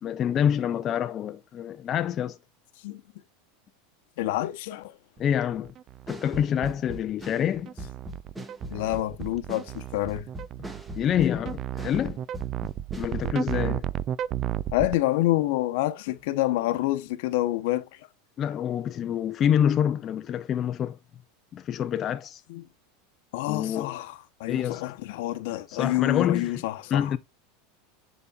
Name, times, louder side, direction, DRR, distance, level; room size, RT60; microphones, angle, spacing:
voice 1, 0.0-2.4 5.2-5.7 6.1-7.7 11.0-12.2 13.0-13.9 18.4-21.0 21.5-22.4 23.5-23.9 24.5-24.8 25.7-26.6 26.9-27.2, left 9 dB, 35° left, 0.5 m, -26 dB
voice 2, 4.2-4.9 8.7-10.2 14.7-17.8 22.5-22.6 23.3-27.2, left 16 dB, 70° left, 0.9 m, -27 dB
sound 1, 5.2-15.0, right 11 dB, 40° right, 0.3 m, -33 dB
sound 2, 6.1-12.1 12.3-13.7, right 1 dB, 10° right, 1.3 m, -40 dB
11.0 x 4.0 x 2.4 m
supercardioid pair, 125°, 0 cm